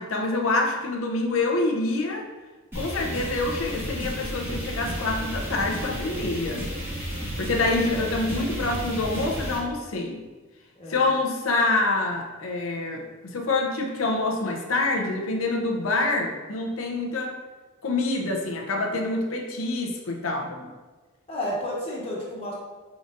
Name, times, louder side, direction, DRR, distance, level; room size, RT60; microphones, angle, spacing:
voice 1, 0.0-2.3 2.7-6.7 7.4-10.2 10.9-17.4 17.8-20.7, left 2 dB, 75° left, 2 dB, 0.7 m, -26 dB
sound 1, 2.7-9.6, equal, 10° right, 1.2 m, -32 dB
voice 2, 21.3-22.5, left 1 dB, 30° left, -6 dB, 1.2 m, -31 dB
4.8 x 3.9 x 2.5 m, 1.3 s
head